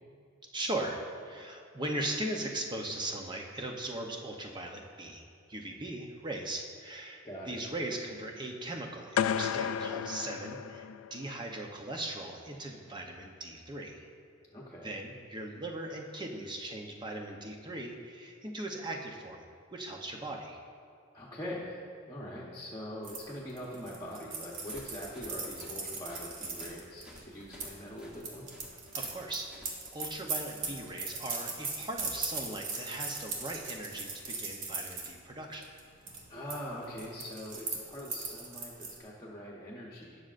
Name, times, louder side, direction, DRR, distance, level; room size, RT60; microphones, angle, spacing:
voice 1, 0.5-5.2 5.5-14.1 14.8-19.4 19.7-20.6 28.9-35.7, right 1 dB, 20° right, 1 dB, 0.7 m, -39 dB
voice 2, 7.2-7.6 14.5-14.9 21.1-28.5 36.3-40.3, equal, 15° left, -6 dB, 1.0 m, -43 dB
sound 1, 9.2-11.3, left 8 dB, 80° left, 0.3 m, -32 dB
sound 2, 23.0-27.7 28.2-35.1 35.5-35.8 36.1-36.6 36.8-39.0, right 4 dB, 75° right, 1.5 m, -39 dB
sound 3, 24.5-30.2, left 1 dB, 5° right, 1.1 m, -54 dB
19.0 x 6.4 x 2.5 m, 2.2 s
head